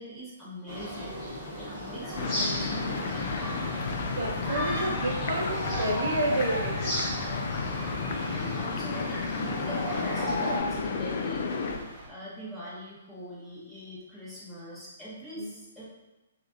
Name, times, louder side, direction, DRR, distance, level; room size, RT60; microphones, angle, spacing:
voice 1, 0.0-3.5 4.7-5.0 8.0-15.9, equal, ahead, -10 dB, 1.0 m, -42 dB
sound 1, 0.7-10.6, equal, 20° left, 1.2 m, -34 dB
sound 2, 2.1-12.1, right 1 dB, 30° right, 1.1 m, -43 dB
sound 3, 2.2-11.8, left 5 dB, 55° left, 0.3 m, -33 dB
voice 2, 4.1-7.0 15.4-15.5, right 1 dB, 65° right, 1 dB, 0.6 m, -30 dB
3.1 x 2.4 x 2.5 m, 1.0 s
hypercardioid pair, 135°, 0 cm